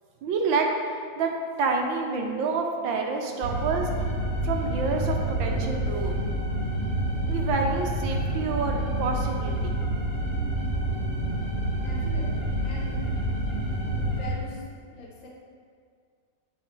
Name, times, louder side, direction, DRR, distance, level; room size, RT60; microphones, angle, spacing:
voice 1, 0.2-0.7 1.1-1.3 1.6-3.9 4.4-6.1 7.3-9.6, right 4 dB, 85° right, 2 dB, 1.6 m, -28 dB
sound 1, 3.4-14.3, right 1 dB, 35° left, 1.9 m, -28 dB
voice 2, 11.8-13.2 14.0-14.6 14.9-15.3, left 3 dB, 85° left, -3 dB, 2.2 m, -42 dB
8.3 x 4.7 x 4.7 m, 2.1 s
omnidirectional pair, 2.0 m